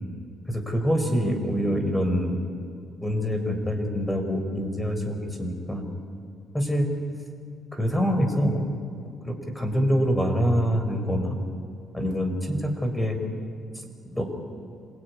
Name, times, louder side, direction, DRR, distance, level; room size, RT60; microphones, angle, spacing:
voice 1, 0.5-2.4 3.0-5.8 6.5-6.9 7.7-8.7 9.0-11.4 11.9-13.2 14.1-14.2, equal, 10° left, 5 dB, 4.9 m, -25 dB
27.0 x 20.0 x 9.7 m, 2.4 s
cardioid pair, 90°, 0 cm